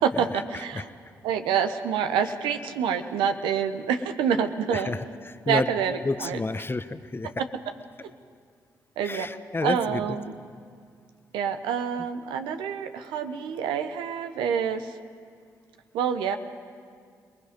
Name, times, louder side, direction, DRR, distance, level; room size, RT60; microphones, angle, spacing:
voice 1, 0.0-0.9 1.2-4.9 5.5-6.4 7.4-7.5 8.0-8.1 9.0-9.3 9.6-10.3 11.3-15.0 15.9-16.4, right 7 dB, 85° right, 8 dB, 0.9 m, -27 dB
voice 2, 5.3-5.7 6.0-7.3 9.0-10.0, left 3 dB, 30° left, 12 dB, 1.0 m, -29 dB
27.0 x 20.5 x 5.2 m, 2.1 s
hypercardioid pair, 45°, 8 cm